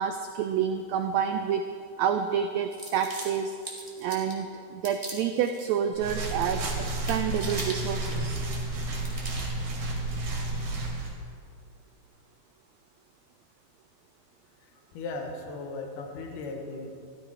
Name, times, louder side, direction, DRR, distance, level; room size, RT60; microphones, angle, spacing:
voice 1, 0.0-1.7 2.0-3.6 4.0-8.4, right 8 dB, 85° right, 7 dB, 1.5 m, -28 dB
sound 1, 2.7-4.4 4.8-5.6 5.9-6.6 6.8-8.6 9.0-9.6, right 1 dB, 15° right, 1.2 m, -41 dB
sound 2, 5.9-11.1, right 2 dB, 65° right, 3.5 m, -31 dB
voice 2, 14.9-16.9, left 3 dB, 75° left, 2 dB, 2.8 m, -37 dB
14.5 x 13.0 x 4.8 m, 2.4 s
omnidirectional pair, 3.8 m